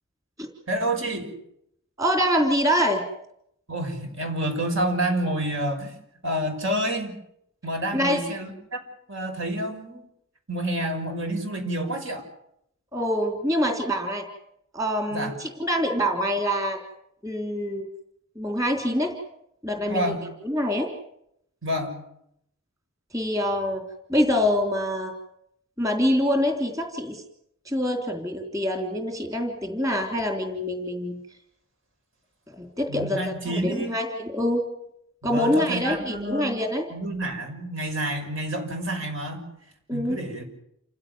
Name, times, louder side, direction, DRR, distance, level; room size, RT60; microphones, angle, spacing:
voice 1, 0.7-1.3 3.7-6.0 6.2-7.1 7.6-8.8 9.1-10.0 10.5-12.3 15.1-15.4 19.8-20.3 21.6-22.0 32.9-34.0 35.3-39.5 39.9-40.4, right 1 dB, 65° right, 5 dB, 6.1 m, -29 dB
voice 2, 2.0-3.0 7.9-8.2 12.9-14.2 14.7-16.8 17.2-17.9 18.4-19.1 19.6-20.2 20.4-20.9 23.1-23.8 24.1-25.1 25.8-27.2 27.7-31.2 32.5-34.6 35.2-36.8 39.9-40.2, equal, 15° right, 4 dB, 3.6 m, -25 dB
29.0 x 16.5 x 9.4 m, 0.75 s
head